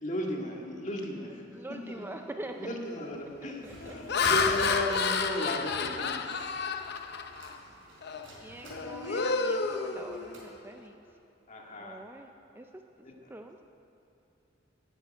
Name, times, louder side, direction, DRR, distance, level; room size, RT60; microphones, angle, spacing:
voice 1, 0.0-1.6 2.5-3.6 3.9-6.2 11.5-12.0, left 1 dB, 40° left, 0 dB, 1.9 m, -35 dB
voice 2, 1.5-2.7 3.4-4.1 8.4-11.0 11.8-12.3 12.5-12.7 13.0-13.6, right 1 dB, 10° right, 5 dB, 0.5 m, -44 dB
Laughter, 2.0-2.3 2.8-3.1 3.8-7.6 8.0-8.3 8.6-10.6, left 5 dB, 55° left, 0.8 m, -30 dB
sound 1, 3.1-10.5, right 1 dB, 75° right, 4.2 m, -48 dB
12.0 x 10.0 x 9.1 m, 2.8 s
head